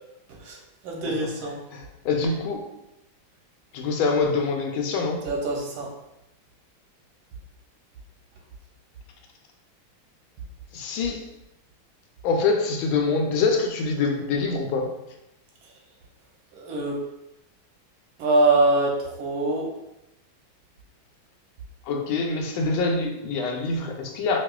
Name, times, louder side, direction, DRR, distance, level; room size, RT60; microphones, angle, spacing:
voice 1, 0.8-1.6 5.2-5.9 16.5-17.0 18.2-19.7, right 2 dB, 90° right, 0 dB, 1.6 m, -23 dB
voice 2, 1.7-2.7 3.7-5.2 10.7-11.3 12.2-14.9 21.8-24.4, left 4 dB, 85° left, 3 dB, 1.4 m, -25 dB
4.8 x 2.4 x 2.3 m, 0.88 s
omnidirectional pair, 2.2 m